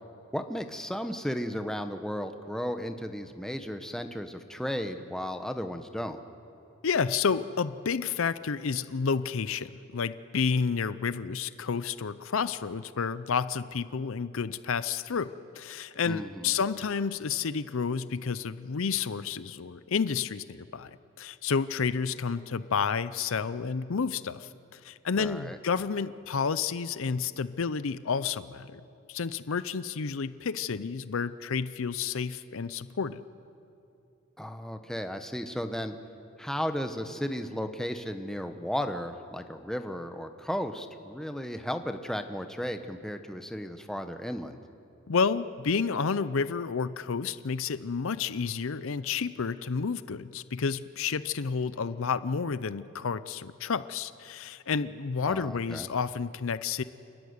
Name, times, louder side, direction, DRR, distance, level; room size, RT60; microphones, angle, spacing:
voice 1, 0.3-6.2 16.1-16.5 25.2-25.6 34.4-35.9 36.4-44.6 55.2-55.9, equal, ahead, 7 dB, 1.0 m, -34 dB
voice 2, 6.8-20.9 21.2-28.8 29.1-33.2 45.1-56.8, left 5 dB, 65° left, 14 dB, 0.6 m, -30 dB
29.5 x 13.5 x 9.6 m, 2.7 s
head